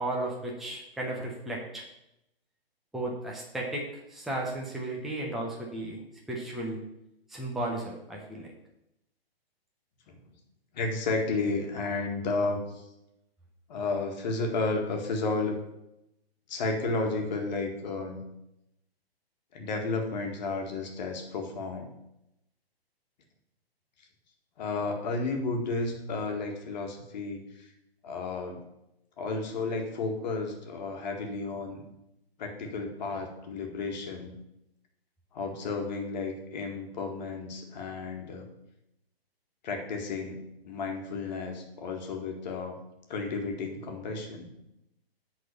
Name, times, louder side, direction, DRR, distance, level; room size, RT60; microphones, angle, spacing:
voice 1, 0.0-1.8 2.9-3.8 4.1-6.0 6.3-6.8 7.3-8.5, right 1 dB, ahead, -3 dB, 0.8 m, -34 dB
voice 2, 10.7-12.8 13.7-15.6 16.5-18.2 19.5-21.9 24.6-27.7 28.0-28.6 29.2-31.8 32.4-34.3 35.3-38.4 39.6-42.8 43.1-44.5, left 3 dB, 45° left, 2 dB, 1.7 m, -32 dB
8.0 x 4.1 x 6.7 m, 0.86 s
hypercardioid pair, 145°, 31 cm